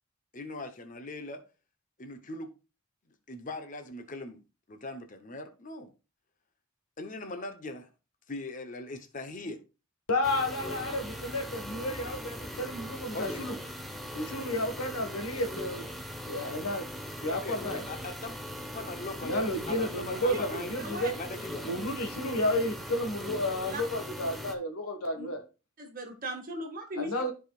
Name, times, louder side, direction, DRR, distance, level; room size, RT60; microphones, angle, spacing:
voice 1, 0.3-1.4 2.0-2.5 3.3-4.4 4.7-5.9 7.0-7.9 8.3-9.6 13.1-13.5 17.3-18.4 18.7-20.8 21.2-21.7, left 2 dB, 35° left, 0.9 m, -40 dB
voice 2, 10.1-13.6 14.1-15.8 16.3-16.9 17.2-17.8 19.2-21.1 21.6-25.4 26.9-27.3, left 1 dB, 90° left, 1.7 m, -32 dB
sound 1, 10.2-24.5, equal, ahead, 0.9 m, -40 dB
voice 3, 25.8-27.1, right 1 dB, 40° right, 1.8 m, -37 dB
13.5 x 4.9 x 2.4 m
head